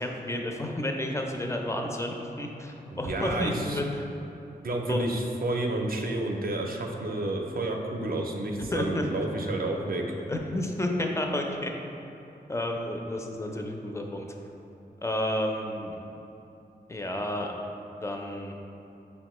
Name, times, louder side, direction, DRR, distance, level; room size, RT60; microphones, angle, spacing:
voice 1, 0.0-4.1 4.9-5.0 8.7-9.0 10.3-11.7 12.5-14.3 15.0-16.0 16.9-17.5 18.0-18.5, left 1 dB, 15° left, 2 dB, 0.4 m, -31 dB
voice 2, 2.9-3.8 4.6-10.1, right 2 dB, 55° right, 1 dB, 0.5 m, -30 dB
5.3 x 2.1 x 3.0 m, 2.9 s
cardioid pair, 60°, 17 cm